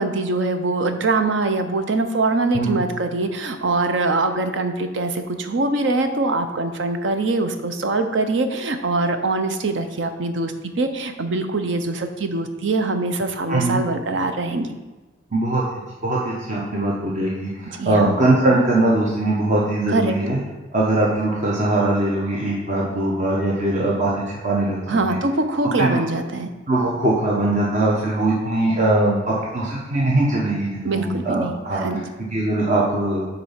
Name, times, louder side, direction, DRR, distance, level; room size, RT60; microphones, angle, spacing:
voice 1, 0.0-14.7 17.7-18.1 19.9-20.1 24.9-26.5 30.8-32.0, right 2 dB, 70° right, 7 dB, 0.7 m, -23 dB
voice 2, 13.5-13.8 15.3-20.4 20.7-25.2 25.8-26.0 26.7-32.0 32.3-33.3, right 2 dB, 40° right, -4 dB, 1.0 m, -21 dB
7.6 x 4.0 x 5.6 m, 1.2 s
head